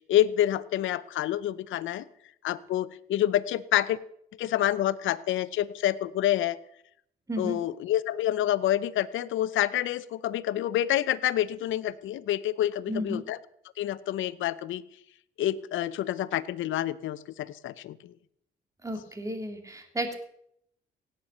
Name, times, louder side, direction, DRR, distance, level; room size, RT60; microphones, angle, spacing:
voice 1, 0.0-2.1 2.4-4.0 4.4-6.6 7.4-13.4 13.8-14.8 15.4-18.1, left 12 dB, 80° left, 16 dB, 0.8 m, -28 dB
voice 2, 12.9-13.2 18.8-20.1, equal, 15° right, 5 dB, 3.0 m, -33 dB
17.0 x 9.0 x 6.7 m, 0.72 s
cardioid pair, 90°, 20 cm